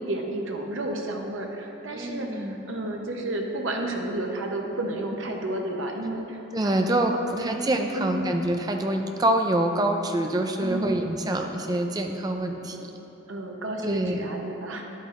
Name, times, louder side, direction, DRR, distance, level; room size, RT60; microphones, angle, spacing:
voice 1, 0.0-6.8 7.3-7.5 7.9-8.3 10.6-11.0 12.6-12.9 13.3-14.8, right 1 dB, 75° right, 1 dB, 0.8 m, -32 dB
voice 2, 1.9-2.6 6.5-12.8 13.8-14.2, right 1 dB, 20° right, 4 dB, 0.4 m, -26 dB
9.9 x 8.2 x 2.5 m, 2.9 s
head